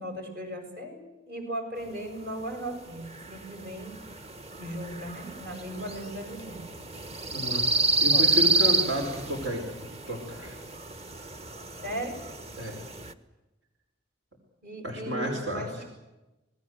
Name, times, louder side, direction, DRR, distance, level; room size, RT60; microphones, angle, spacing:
voice 1, 0.0-3.0 3.3-4.0 4.6-6.9 8.1-8.3 11.8-12.1 14.6-15.8, right 1 dB, 55° right, 4 dB, 7.1 m, -37 dB
sound 1, 2.3-13.1, right 3 dB, 35° right, 1.4 m, -29 dB
voice 2, 7.3-7.7 8.0-10.6 12.6-12.8 14.8-15.8, left 1 dB, 85° right, 2 dB, 5.0 m, -32 dB
27.5 x 20.5 x 8.1 m, 1.0 s
head